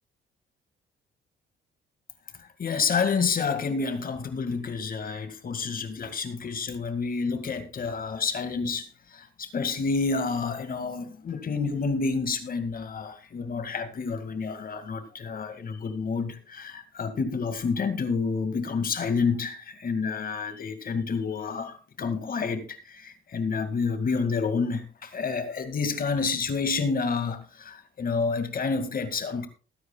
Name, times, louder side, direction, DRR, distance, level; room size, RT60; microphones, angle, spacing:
voice 1, 2.4-29.5, left 5 dB, 45° left, 2.1 m, -29 dB
20.5 x 9.5 x 2.3 m
cardioid pair, 90°, 20 cm